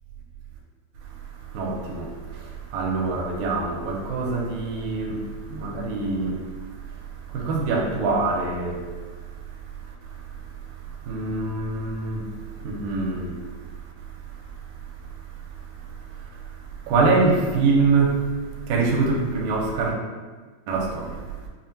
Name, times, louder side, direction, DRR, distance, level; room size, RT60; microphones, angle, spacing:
voice 1, 1.5-2.1 2.7-5.2 5.5-6.4 7.3-8.8 11.1-12.2 12.6-13.4 16.9-18.2 18.7-19.9 20.7-21.2, right 3 dB, 80° right, -1 dB, 1.9 m, -24 dB
5.5 x 2.1 x 2.7 m, 1.4 s
omnidirectional pair, 3.5 m